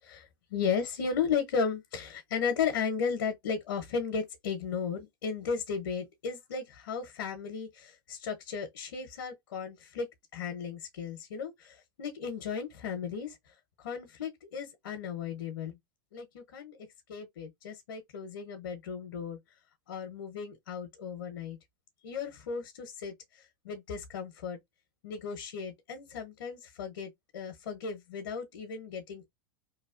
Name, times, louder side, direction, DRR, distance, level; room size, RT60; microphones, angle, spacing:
voice 1, 0.0-10.1 10.3-15.8 16.1-16.8 17.1-19.4 19.9-21.6 22.0-24.6 25.0-29.3, left 6 dB, 80° left, 0.8 m, -35 dB
2.8 x 2.2 x 2.4 m
hypercardioid pair, 105°, 11 cm